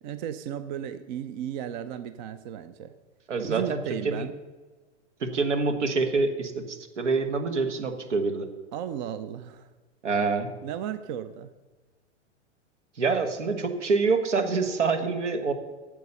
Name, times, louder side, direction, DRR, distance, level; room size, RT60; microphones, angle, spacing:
voice 1, 0.0-2.9 3.4-4.3 8.7-9.7 10.6-11.5, right 9 dB, 40° right, 12 dB, 0.6 m, -35 dB
voice 2, 3.3-3.8 4.0-4.3 5.2-8.5 10.0-10.5 13.0-15.5, right 4 dB, 75° right, 7 dB, 1.5 m, -26 dB
9.2 x 7.4 x 6.7 m, 1.3 s
hypercardioid pair, 110°, 36 cm